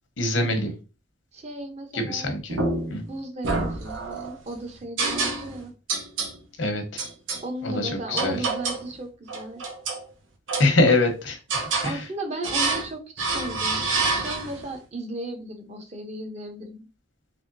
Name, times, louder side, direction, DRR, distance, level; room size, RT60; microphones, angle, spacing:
voice 1, 0.2-0.7 1.9-2.6 2.9-3.0 6.6-7.0 7.6-8.4 10.6-12.0, left 2 dB, 85° left, 5 dB, 0.9 m, -24 dB
voice 2, 1.3-2.3 3.1-5.7 7.4-9.6 11.8-16.8, right 1 dB, 35° right, 5 dB, 0.7 m, -35 dB
sound 1, 2.5-3.0 3.4-4.3 5.0-5.6 5.9-6.4 7.0-7.4 8.2-8.9 9.3-10.0 10.5-11.1 11.5-12.0 12.4-12.9 13.2-14.6, right 3 dB, 90° right, 0.9 m, -27 dB
3.4 x 3.2 x 2.6 m, 0.32 s
head